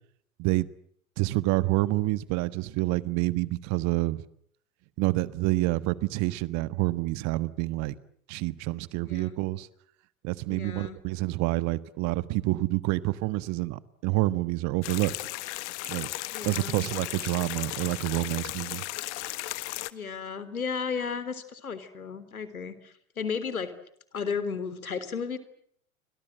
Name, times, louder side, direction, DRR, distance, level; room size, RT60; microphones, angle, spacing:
voice 1, 1.2-4.2 5.0-7.9 8.3-9.7 10.2-15.1 15.8-16.1 16.4-18.8, right 20 dB, 40° right, 1.5 m, -28 dB
voice 2, 9.0-9.3 10.5-11.0 16.3-16.8 19.9-23.7 24.1-25.4, left 6 dB, 80° left, 3.7 m, -34 dB
sound 1, 14.8-19.9, left 19 dB, 55° left, 1.5 m, -35 dB
29.5 x 25.0 x 8.0 m
figure-of-eight pair, 95°, 42 cm